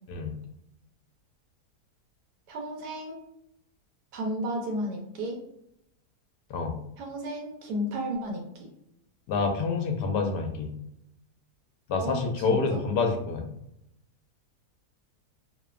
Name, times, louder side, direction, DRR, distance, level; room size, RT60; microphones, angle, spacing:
voice 1, 2.5-3.2 4.1-5.4 7.0-8.7 12.0-12.8, equal, 80° right, 1 dB, 1.3 m, -33 dB
voice 2, 9.3-10.7 11.9-13.5, left 4 dB, 80° left, 4 dB, 1.2 m, -27 dB
3.1 x 2.1 x 2.3 m, 0.78 s
omnidirectional pair, 1.8 m